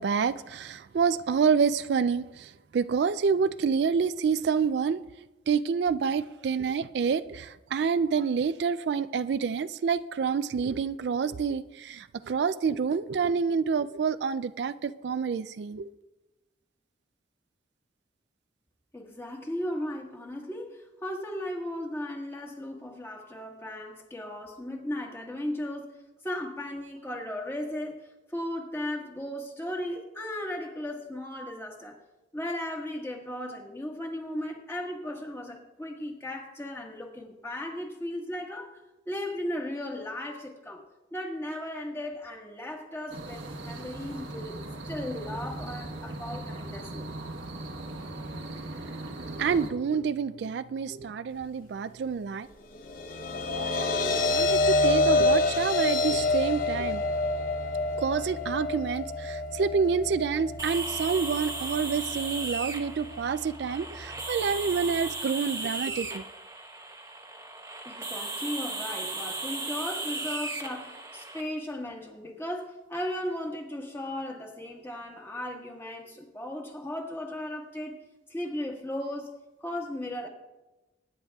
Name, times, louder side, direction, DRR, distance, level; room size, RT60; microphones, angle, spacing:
voice 1, 0.0-5.0 5.5-15.9 49.3-52.5 53.5-57.1 58.0-66.2, right 6 dB, 65° right, 13 dB, 0.3 m, -28 dB
voice 2, 18.9-25.9 26.2-32.0 32.3-40.8 41.1-44.6 44.9-47.1 67.8-78.0 78.3-79.3 79.6-80.3, left 1 dB, 15° left, 0 dB, 1.5 m, -36 dB
sound 1, 43.1-49.7, right 2 dB, 90° right, 1.3 m, -39 dB
sound 2, 52.7-65.1, left 2 dB, 50° left, 0.8 m, -28 dB
sound 3, 60.6-71.4, right 2 dB, 15° right, 0.9 m, -36 dB
24.0 x 10.0 x 2.3 m, 1.1 s
head